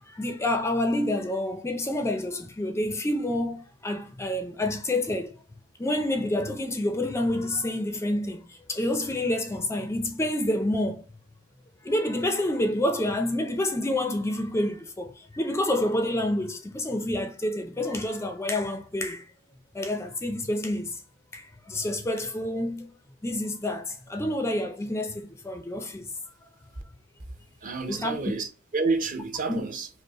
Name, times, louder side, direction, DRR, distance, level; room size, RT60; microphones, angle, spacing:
voice 1, 0.0-5.4 5.8-11.1 11.8-19.3 19.7-21.0 21.3-22.9 23.2-26.1 27.9-28.2 29.5-29.6, left 1 dB, 15° left, 0.4 m, -28 dB
voice 2, 27.6-29.9, right 4 dB, 40° right, 0.7 m, -29 dB
5.1 x 2.1 x 2.9 m
head